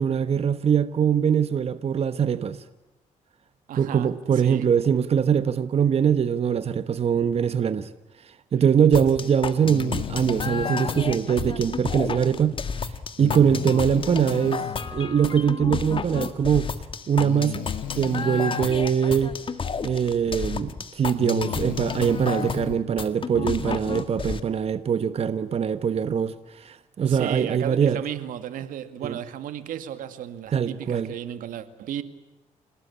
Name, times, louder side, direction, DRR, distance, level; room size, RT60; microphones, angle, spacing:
voice 1, 0.0-2.6 3.8-7.9 8.5-12.5 13.2-14.6 14.9-16.7 17.1-17.7 17.9-19.3 19.8-28.0 29.0-29.2 30.5-31.1, right 8 dB, 50° right, 1.2 m, -22 dB
voice 2, 3.7-4.7 9.2-9.3 27.1-32.0, right 10 dB, 85° right, 2.0 m, -34 dB
sound 1, 8.9-24.4, left 5 dB, 40° left, 1.9 m, -32 dB
Breathing, 9.6-11.2 13.2-14.8 16.1-16.2 17.2-18.7 20.2-20.3 21.0-22.8, left 12 dB, 80° left, 1.0 m, -34 dB
29.5 x 18.5 x 8.5 m
cardioid pair, 95°, 14 cm